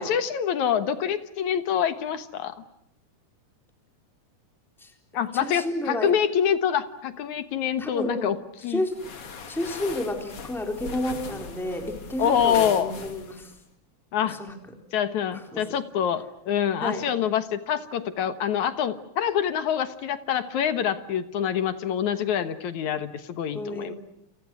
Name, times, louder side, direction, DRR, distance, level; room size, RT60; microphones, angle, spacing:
voice 1, 0.0-2.5 5.1-8.4 8.6-8.8 12.2-12.9 14.1-14.4 14.9-23.9, left 9 dB, 70° left, 10 dB, 2.7 m, -26 dB
voice 2, 5.3-6.1 7.8-8.3 8.7-9.0 9.5-13.5 14.2-14.6 15.3-15.7 16.8-17.0 23.5-24.0, left 1 dB, ahead, 4 dB, 3.6 m, -31 dB
sound 1, 8.9-13.6, left 5 dB, 50° left, 3.0 m, -40 dB
30.0 x 28.0 x 6.3 m, 0.76 s
omnidirectional pair, 3.6 m